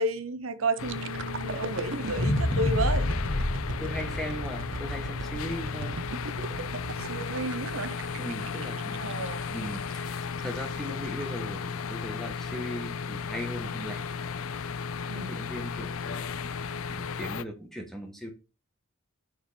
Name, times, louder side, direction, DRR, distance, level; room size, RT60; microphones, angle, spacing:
voice 1, 0.0-3.1 7.0-8.0 9.0-9.5 15.1-15.5, right 2 dB, 90° right, 0.9 m, -32 dB
sound 1, 0.7-10.6 11.0-11.2, right 4 dB, 65° right, 0.7 m, -40 dB
sound 2, 0.8-17.4, left 5 dB, 85° left, 0.5 m, -35 dB
sound 3, 2.1-6.3 6.8-6.9, left 1 dB, 30° left, 0.7 m, -30 dB
voice 2, 3.8-6.0 8.2-14.1 15.1-16.5 16.7-18.3, equal, ahead, 1.5 m, -39 dB
7.1 x 4.7 x 5.2 m
head